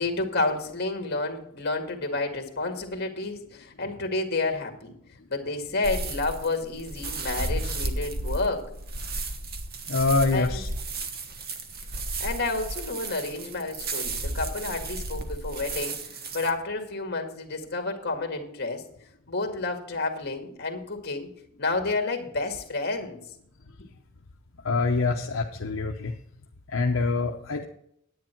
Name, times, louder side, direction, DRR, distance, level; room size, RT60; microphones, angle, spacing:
voice 1, 0.0-4.9 5.3-8.7 10.3-10.6 12.2-16.1 16.3-18.9 19.3-21.3 21.6-23.2, left 3 dB, 50° left, 3 dB, 2.0 m, -30 dB
sound 1, 5.8-16.5, right 2 dB, 50° right, 1.3 m, -33 dB
voice 2, 9.9-10.7 24.6-26.1 26.7-27.6, left 3 dB, 70° left, 2 dB, 0.8 m, -25 dB
10.0 x 9.3 x 4.5 m, 0.72 s
head